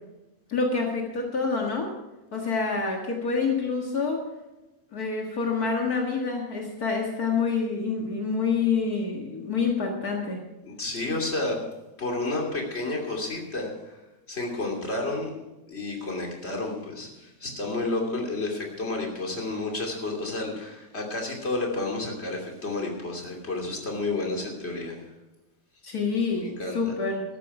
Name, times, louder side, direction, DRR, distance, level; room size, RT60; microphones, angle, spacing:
voice 1, 0.5-1.9 2.3-4.2 4.9-10.4 25.8-27.2, left 4 dB, 55° left, 0 dB, 1.0 m, -27 dB
voice 2, 10.6-11.6 12.0-14.0 14.3-15.3 15.7-25.0 26.4-26.8, left 2 dB, 20° left, 0 dB, 2.4 m, -31 dB
14.0 x 13.0 x 4.9 m, 1.0 s
omnidirectional pair, 4.3 m